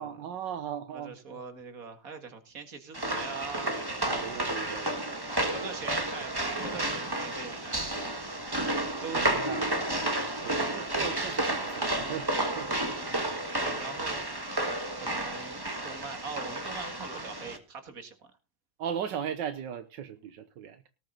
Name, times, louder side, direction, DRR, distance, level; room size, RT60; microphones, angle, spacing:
voice 1, 0.0-1.4 4.0-5.3 9.1-9.6 10.4-12.7 18.8-20.8, right 8 dB, 80° right, 1.7 m, -38 dB
voice 2, 0.9-3.8 5.3-8.1 9.0-9.4 12.9-13.3 13.6-14.2 14.9-18.2, right 5 dB, 50° right, 2.4 m, -42 dB
sound 1, 2.9-17.6, right 1 dB, 15° right, 1.5 m, -31 dB
18.5 x 7.6 x 3.8 m
omnidirectional pair, 1.9 m